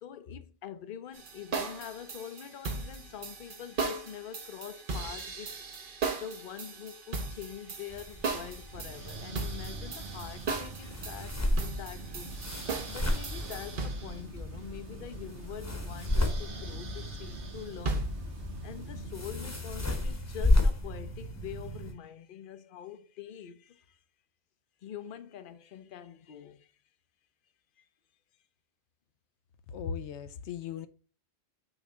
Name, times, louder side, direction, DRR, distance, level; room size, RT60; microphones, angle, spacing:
voice 1, 0.0-5.6 6.1-18.1 18.6-24.0 24.8-26.7 27.8-27.9, left 9 dB, 55° left, 0.7 m, -45 dB
sound 1, 1.2-14.2 17.9-18.2, right 4 dB, 50° right, 1.0 m, -37 dB
sound 2, 7.9-21.9, left 1 dB, 15° left, 0.9 m, -33 dB
sound 3, 8.7-19.6, right 3 dB, 80° right, 1.4 m, -45 dB
voice 2, 29.7-30.9, left 7 dB, 85° left, 0.9 m, -37 dB
6.1 x 3.3 x 4.9 m
omnidirectional pair, 1.1 m